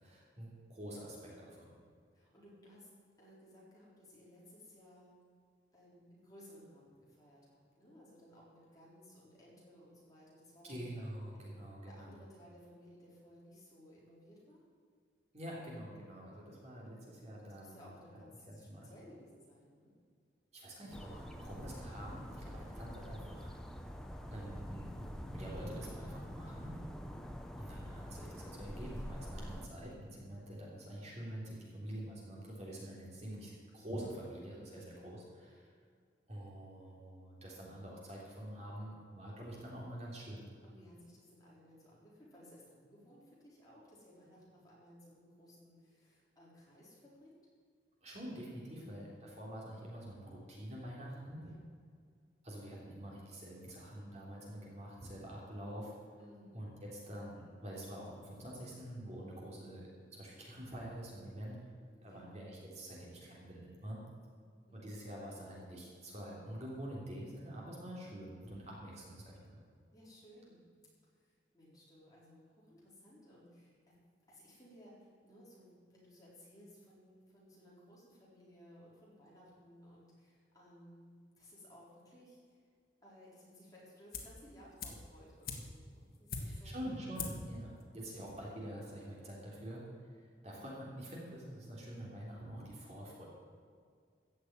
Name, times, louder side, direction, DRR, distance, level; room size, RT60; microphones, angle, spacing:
voice 1, 0.0-1.7 10.6-12.2 15.3-17.8 18.5-18.9 20.5-23.5 24.3-26.8 27.5-35.7 36.3-40.5 48.0-51.5 52.4-55.9 56.5-61.6 62.0-64.0 64.7-69.6 86.4-89.8 90.1-93.3, right 1 dB, 40° right, -4 dB, 3.3 m, -46 dB
voice 2, 2.1-2.9 3.2-5.2 5.7-10.8 11.3-11.5 11.8-14.6 17.5-19.9 26.4-26.7 34.6-34.9 40.6-47.3 48.6-49.0 51.4-51.7 56.2-56.6 61.9-62.4 64.7-64.9 69.9-70.7 71.2-73.8 74.3-82.6 83.0-87.2, equal, 20° left, -7 dB, 4.3 m, -59 dB
sound 1, 20.9-29.7, equal, 5° left, 0.8 m, -46 dB
sound 2, 84.1-84.4 84.8-86.8 87.1-87.5 87.8-87.9, left 4 dB, 55° left, 1.9 m, -43 dB
15.0 x 6.6 x 9.0 m, 2.1 s
head